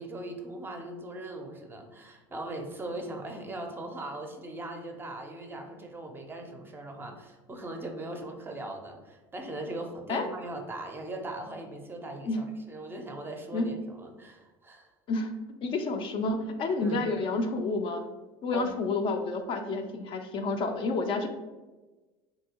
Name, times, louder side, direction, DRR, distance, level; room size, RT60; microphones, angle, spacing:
voice 1, 0.0-14.9 16.8-17.1 18.5-18.7, right 2 dB, 15° right, 3 dB, 0.5 m, -39 dB
voice 2, 15.6-18.1 18.4-21.3, left 3 dB, 45° left, 5 dB, 0.4 m, -29 dB
3.3 x 2.7 x 2.8 m, 1.2 s
supercardioid pair, 105°, 12 cm